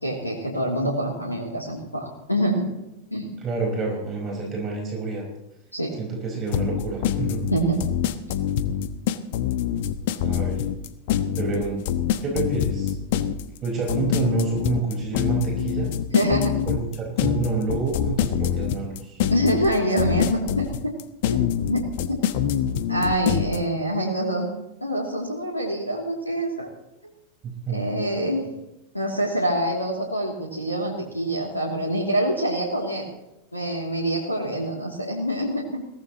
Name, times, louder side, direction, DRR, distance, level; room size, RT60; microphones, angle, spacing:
voice 1, 0.0-2.7 3.1-3.3 5.7-5.9 7.5-7.8 16.1-16.6 19.3-20.9 21.3-22.2 22.9-24.5 24.8-26.7 27.7-28.4 28.9-33.1 33.5-35.8, right 1 dB, 85° left, -2 dB, 3.0 m, -25 dB
voice 2, 3.4-5.3 6.0-7.4 10.2-10.6 11.3-11.8 12.2-13.0 13.6-15.9 16.6-19.2 27.6-27.9, right 4 dB, 30° right, 0 dB, 5.0 m, -28 dB
sound 1, 6.5-23.6, left 9 dB, 50° left, 1.2 m, -25 dB
22.0 x 18.0 x 3.1 m, 0.91 s
figure-of-eight pair, 90°, 0 cm